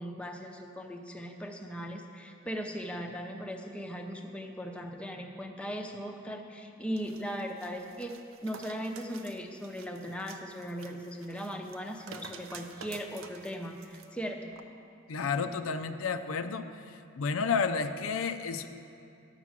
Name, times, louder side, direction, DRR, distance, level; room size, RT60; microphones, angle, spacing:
voice 1, 0.0-8.1 8.4-14.5, equal, 5° left, 2 dB, 0.6 m, -38 dB
sound 1, 7.0-14.1 14.5-14.6, right 5 dB, 80° right, 0.6 m, -50 dB
voice 2, 15.1-16.7 17.2-18.7, left 5 dB, 80° left, 9 dB, 0.5 m, -31 dB
11.0 x 6.0 x 7.3 m, 2.6 s
head